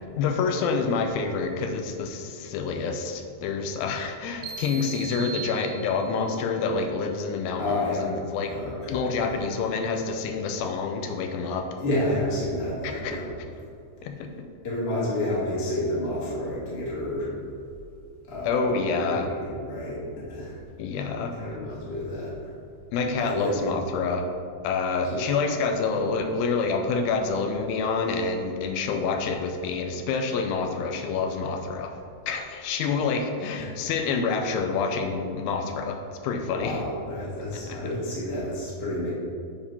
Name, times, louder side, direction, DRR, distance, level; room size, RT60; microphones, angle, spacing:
voice 1, 0.2-8.6 8.9-11.7 12.8-13.2 14.0-14.3 18.4-19.3 20.8-21.4 22.9-24.3 24.6-32.0 32.3-36.8 37.5-37.8, left 4 dB, 85° left, 5 dB, 2.3 m, -27 dB
sound 1, 4.4-6.4, right 7 dB, 80° right, 1.8 m, -38 dB
voice 2, 7.6-8.0 8.5-9.4 11.8-13.3 14.6-17.3 18.3-18.8 19.1-20.0 20.3-20.5 21.4-22.3 23.2-23.6 25.1-25.2 33.6-33.7 36.5-39.1, left 1 dB, 55° left, -7 dB, 0.6 m, -30 dB
7.2 x 3.4 x 5.4 m, 2.4 s
omnidirectional pair, 4.3 m